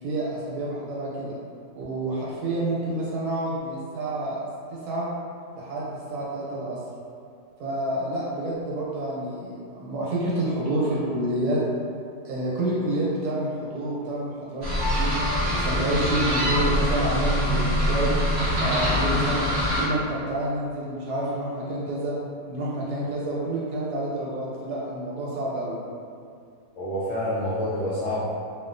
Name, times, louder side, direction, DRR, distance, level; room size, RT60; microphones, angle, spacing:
voice 1, 0.0-1.4 1.8-4.4 4.8-5.1 5.6-6.8 7.6-11.6 12.2-15.1 15.5-18.1 18.6-19.5 19.8-22.1 22.5-25.8, right 1 dB, 80° right, -6 dB, 1.3 m, -28 dB
sound 1, 14.6-19.8, equal, 60° right, 0.4 m, -24 dB
voice 2, 26.8-28.2, left 1 dB, 70° left, -9 dB, 0.7 m, -27 dB
2.7 x 2.3 x 2.5 m, 2.3 s
omnidirectional pair, 1.7 m